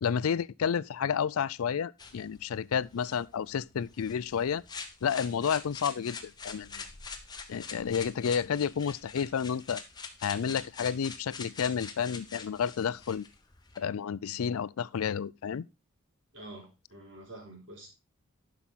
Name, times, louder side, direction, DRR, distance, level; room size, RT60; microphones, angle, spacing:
voice 1, 0.0-4.6 5.0-6.9 7.5-9.8 10.2-13.3 13.8-15.6, left 7 dB, 80° left, 0.4 m, -31 dB
sound 1, 2.0-13.8, left 5 dB, 20° left, 1.1 m, -45 dB
voice 2, 16.3-17.9, right 1 dB, 60° right, 3.8 m, -47 dB
11.5 x 5.9 x 4.0 m
head